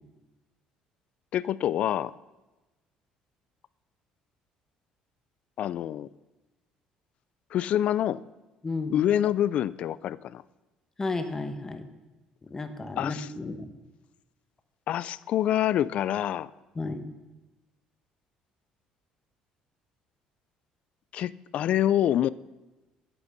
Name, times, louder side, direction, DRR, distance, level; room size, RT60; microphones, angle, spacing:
voice 1, 1.3-2.1 5.6-6.1 7.5-8.2 8.9-10.4 13.0-13.3 14.9-16.5 21.1-22.3, left 11 dB, 55° left, 19 dB, 0.3 m, -26 dB
voice 2, 8.6-9.0 11.0-11.8 12.4-13.7 16.7-17.0, left 3 dB, 20° left, 8 dB, 1.0 m, -33 dB
8.6 x 8.0 x 6.1 m, 1.1 s
cardioid pair, 115°, 2 cm